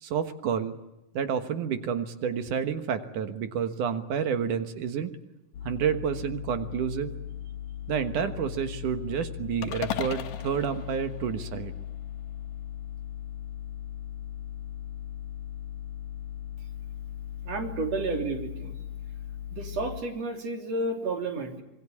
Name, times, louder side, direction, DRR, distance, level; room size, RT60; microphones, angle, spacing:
voice 1, 0.0-0.7 1.1-5.1 5.6-7.1 7.9-11.7, right 7 dB, 75° right, 9 dB, 2.9 m, -29 dB
sound 1, 5.5-20.0, left 10 dB, 70° left, 3.4 m, -38 dB
sound 2, 9.6-11.9, left 9 dB, 90° left, 2.8 m, -37 dB
voice 2, 17.4-18.7 19.5-21.6, right 3 dB, 55° right, 4 dB, 4.4 m, -31 dB
26.5 x 22.5 x 8.4 m, 0.95 s
omnidirectional pair, 3.7 m